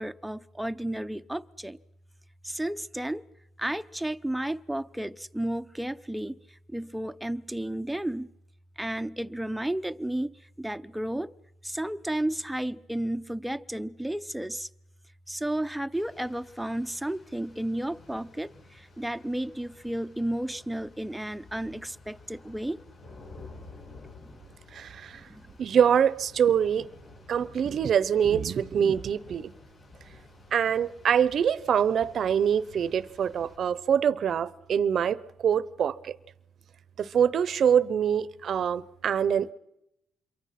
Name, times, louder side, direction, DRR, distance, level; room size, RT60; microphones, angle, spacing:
voice 1, 0.0-1.8 2.4-3.2 3.6-6.4 6.7-8.3 8.8-10.3 10.6-11.3 11.6-14.7 15.3-22.8 24.2-24.4 25.3-25.4, right 1 dB, 5° right, 0.8 m, -32 dB
Rain, 15.9-33.6, left 3 dB, 60° left, 8.0 m, -52 dB
voice 2, 24.7-25.2 25.6-26.9 27.3-29.5 30.5-36.2 37.0-39.5, right 8 dB, 60° right, 0.8 m, -25 dB
27.0 x 23.5 x 5.9 m
cardioid pair, 90°, 0 cm